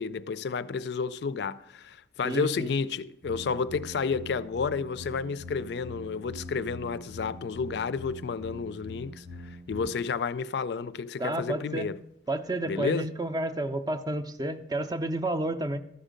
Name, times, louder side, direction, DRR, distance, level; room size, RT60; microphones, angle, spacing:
voice 1, 0.0-12.0 12.7-13.1, left 5 dB, 65° left, 0.4 m, -31 dB
voice 2, 2.2-2.7 11.2-11.9 12.3-15.8, right 1 dB, 20° right, 0.5 m, -30 dB
sound 1, 3.2-9.9, left 1 dB, 70° right, 1.3 m, -43 dB
13.0 x 5.4 x 5.1 m
head